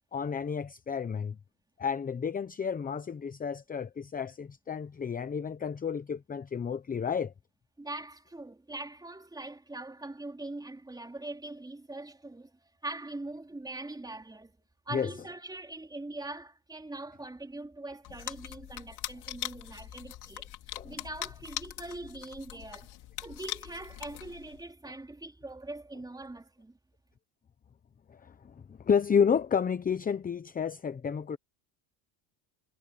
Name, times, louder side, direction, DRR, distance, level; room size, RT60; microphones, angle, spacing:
voice 1, 0.1-1.4 1.8-7.3 14.9-15.1 20.7-20.9 28.1-31.4, left 6 dB, 20° left, 0.8 m, -31 dB
voice 2, 7.8-14.6 14.9-20.5 20.8-22.9 23.2-26.8, right 2 dB, 10° right, 3.8 m, -42 dB
sound 1, 18.0-24.6, left 14 dB, 60° left, 5.2 m, -42 dB
cardioid pair, 130°, 44 cm